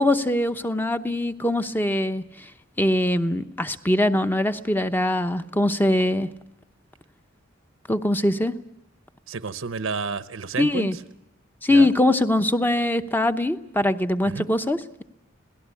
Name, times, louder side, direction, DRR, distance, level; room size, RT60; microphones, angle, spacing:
voice 1, 0.0-2.5 2.8-6.3 7.9-8.5 10.6-11.0 11.6-15.0, left 1 dB, 10° left, 9 dB, 0.8 m, -22 dB
voice 2, 9.3-10.9 11.7-11.9 14.2-14.4, right 4 dB, 75° right, 13 dB, 0.9 m, -30 dB
26.5 x 18.0 x 8.4 m, 0.85 s
head